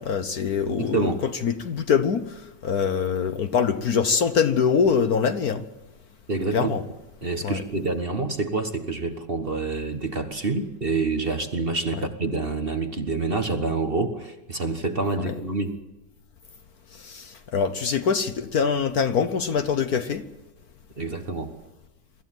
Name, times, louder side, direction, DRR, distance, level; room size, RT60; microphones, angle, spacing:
voice 1, 0.0-5.6 6.5-6.8 7.4-7.6 12.0-12.1 15.2-15.4 16.9-20.3, left 6 dB, 55° left, 1.3 m, -24 dB
voice 2, 0.6-1.2 6.3-6.7 7.2-15.8 21.0-21.5, right 3 dB, 30° right, 1.4 m, -27 dB
24.5 x 14.5 x 9.2 m
omnidirectional pair, 2.1 m